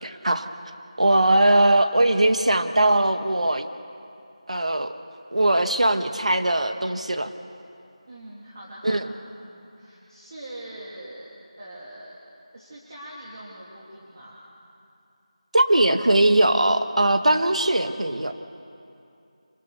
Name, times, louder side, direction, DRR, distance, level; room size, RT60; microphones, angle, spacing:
voice 1, 0.0-0.5 1.0-3.7 4.5-4.9 5.3-7.3 8.8-9.0 15.5-18.3, right 1 dB, 90° right, 8 dB, 1.5 m, -20 dB
voice 2, 8.1-11.3 11.6-12.2 12.5-14.4, right 1 dB, 35° right, -6 dB, 3.2 m, -42 dB
27.0 x 19.5 x 6.8 m, 2.7 s
figure-of-eight pair, 175°, 3 cm